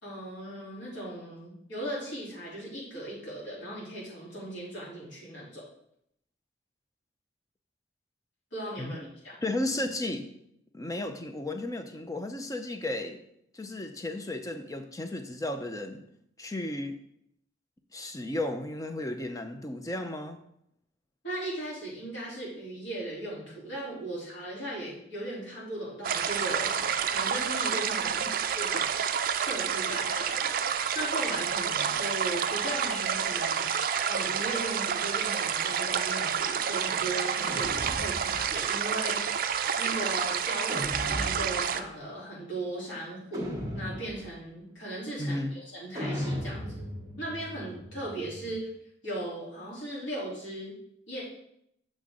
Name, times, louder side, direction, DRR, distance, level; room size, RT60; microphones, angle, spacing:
voice 1, 0.0-5.6 8.5-9.3 21.2-28.2 28.5-29.0 29.3-39.5 39.8-46.8 47.2-48.7 49.0-50.8 51.1-51.2, right 1 dB, 80° left, -6 dB, 3.4 m, -38 dB
voice 2, 9.4-10.3 10.7-13.2 13.5-16.0 16.4-17.0 17.9-20.4 28.1-28.3 45.2-45.5, left 1 dB, 15° left, 8 dB, 0.5 m, -34 dB
sound 1, 26.0-41.8, right 7 dB, 45° right, 0.4 m, -29 dB
sound 2, 37.5-38.8 40.7-41.8 43.3-44.4 46.0-48.6, equal, 20° right, 1.3 m, -37 dB
7.6 x 6.3 x 3.7 m, 0.75 s
head